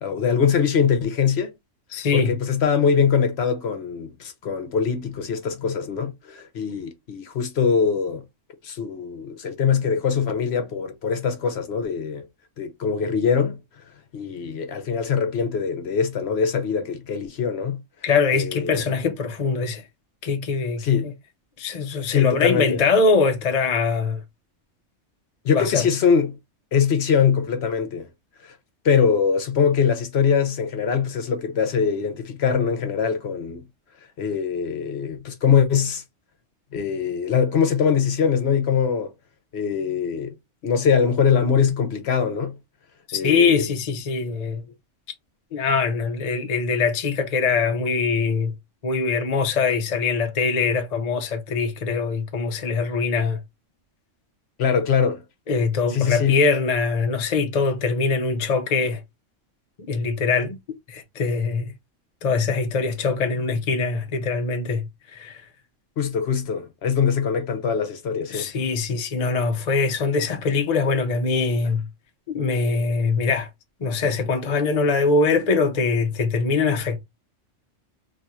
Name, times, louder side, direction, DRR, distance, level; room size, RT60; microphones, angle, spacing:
voice 1, 0.0-1.5 2.1-8.2 8.6-12.3 12.6-13.6 14.1-17.8 18.3-18.8 20.8-21.1 22.1-22.8 25.4-26.4 26.7-28.1 28.4-28.6 28.8-33.6 34.2-36.0 36.7-39.1 39.5-40.3 40.6-42.6 43.1-43.7 54.6-55.2 55.9-56.4 66.0-68.5, left 6 dB, 65° left, 0.9 m, -22 dB
voice 2, 1.9-2.3 18.0-19.8 20.2-21.1 21.6-24.2 25.5-25.9 43.1-44.6 45.5-48.5 48.8-53.4 55.5-59.0 59.9-60.6 60.9-61.7 62.2-64.8 65.1-65.4 68.3-71.9 72.3-73.5 73.8-77.0, left 4 dB, 45° left, 0.6 m, -22 dB
2.7 x 2.4 x 4.2 m
omnidirectional pair, 1.3 m